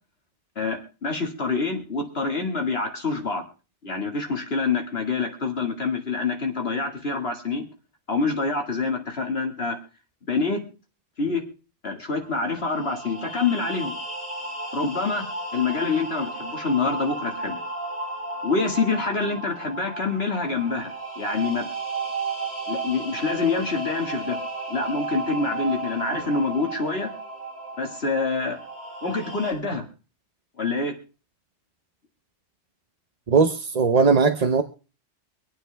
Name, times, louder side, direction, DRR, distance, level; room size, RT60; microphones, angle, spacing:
voice 1, 0.6-3.4 3.8-7.7 8.1-9.8 10.3-10.6 11.2-11.4 11.8-13.9 14.7-15.2 15.5-17.6 18.4-21.7 22.7-24.4 24.7-27.1 27.8-28.6 29.0-29.8 30.6-30.9, left 4 dB, 60° left, 3 dB, 2.4 m, -26 dB
sound 1, 12.2-29.5, right 3 dB, 10° right, 6.8 m, -34 dB
voice 2, 33.3-34.6, right 5 dB, 40° right, 7 dB, 0.8 m, -19 dB
25.0 x 8.8 x 3.4 m, 0.34 s
omnidirectional pair, 1.2 m